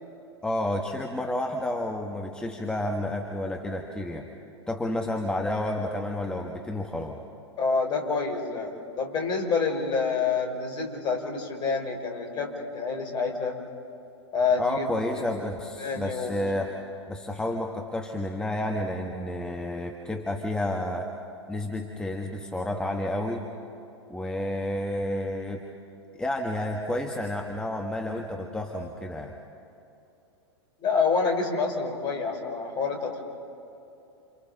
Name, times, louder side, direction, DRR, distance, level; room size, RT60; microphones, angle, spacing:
voice 1, 0.4-4.3 4.7-7.2 14.6-21.1 21.5-23.5 24.1-25.6 26.2-29.3, left 1 dB, 5° left, 1 dB, 1.5 m, -30 dB
voice 2, 7.6-13.6 14.3-14.9 15.8-16.7 30.8-33.2, left 4 dB, 30° left, 2 dB, 4.2 m, -27 dB
29.0 x 28.5 x 3.9 m, 2.9 s
figure-of-eight pair, 95°, 14 cm